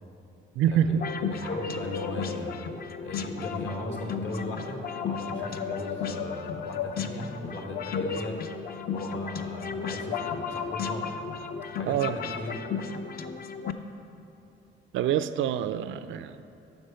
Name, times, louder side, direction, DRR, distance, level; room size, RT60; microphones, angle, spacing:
voice 1, 0.6-1.0 11.9-12.2 14.9-16.4, right 9 dB, 75° right, 12 dB, 0.4 m, -26 dB
sound 1, 1.0-13.7, left 6 dB, 50° left, 0.5 m, -34 dB
voice 2, 1.3-2.6 3.0-8.4 8.9-11.1 11.7-12.6, left 2 dB, 70° left, 1 dB, 1.5 m, -37 dB
8.0 x 6.1 x 5.7 m, 2.7 s
cardioid pair, 90°, 20 cm